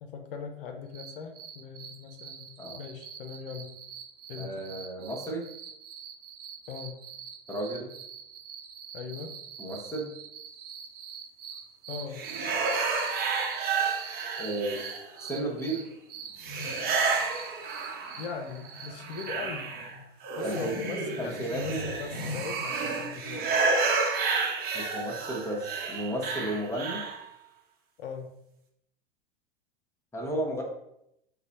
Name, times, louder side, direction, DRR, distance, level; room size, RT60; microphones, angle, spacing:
voice 1, 0.0-3.7 4.3-4.6 6.7-7.0 8.9-9.4 11.9-12.3 18.2-19.7 20.4-23.5 28.0-28.3, left 5 dB, 65° left, 6 dB, 0.6 m, -40 dB
sound 1, 0.9-19.3, right 8 dB, 65° right, 0.7 m, -45 dB
voice 2, 4.4-5.4 7.5-7.9 9.6-10.1 14.4-14.8 15.2-15.8 20.4-20.7 21.2-21.8 24.7-27.0 30.1-30.6, right 1 dB, 10° left, -1 dB, 0.9 m, -33 dB
sound 2, 12.1-15.3 16.4-18.4 18.8-27.2, right 4 dB, 30° right, 1.0 m, -30 dB
3.9 x 2.2 x 4.0 m, 0.79 s
hypercardioid pair, 95°, 30 cm